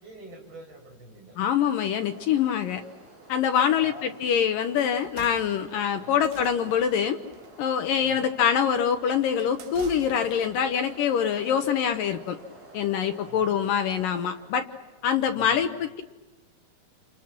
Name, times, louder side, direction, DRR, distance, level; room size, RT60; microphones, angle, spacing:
voice 1, 0.0-1.3 3.6-4.1 6.0-6.3 8.0-8.3 13.2-13.6 15.3-15.6, right 1 dB, 25° right, 1 dB, 6.4 m, -46 dB
voice 2, 1.4-2.8 3.3-7.2 7.6-12.4 12.7-14.7 15.0-16.0, left 8 dB, 75° left, 7 dB, 2.0 m, -24 dB
sound 1, 1.6-15.1, right 2 dB, 40° right, 8.5 m, -50 dB
sound 2, 4.9-10.6, right 6 dB, 75° right, 4.5 m, -48 dB
29.0 x 28.5 x 6.1 m, 1.1 s
omnidirectional pair, 5.4 m